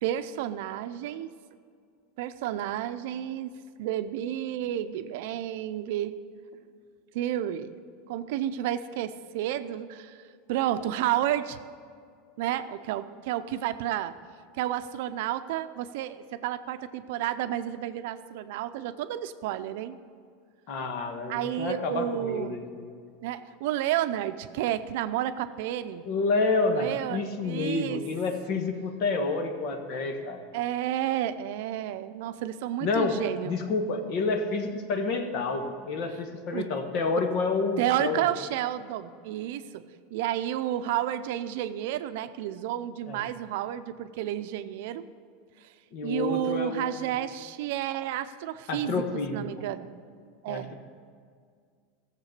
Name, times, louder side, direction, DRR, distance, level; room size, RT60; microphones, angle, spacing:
voice 1, 0.0-1.3 2.2-3.5 3.8-6.2 7.1-7.7 8.1-10.2 10.5-11.6 12.4-14.1 14.5-20.0 21.3-22.6 23.2-26.0 26.7-28.0 28.5-28.6 30.5-33.6 36.5-36.7 37.8-39.8 40.1-45.0 46.0-49.0 49.3-49.9 50.4-50.7, right 12 dB, 70° right, 10 dB, 0.6 m, -31 dB
voice 2, 20.7-23.0 26.0-30.4 32.8-38.3 43.1-43.3 45.9-47.0 48.7-49.5 50.5-50.8, left 3 dB, 55° left, 6 dB, 1.4 m, -29 dB
14.5 x 7.4 x 6.7 m, 2.1 s
supercardioid pair, 140°, 0 cm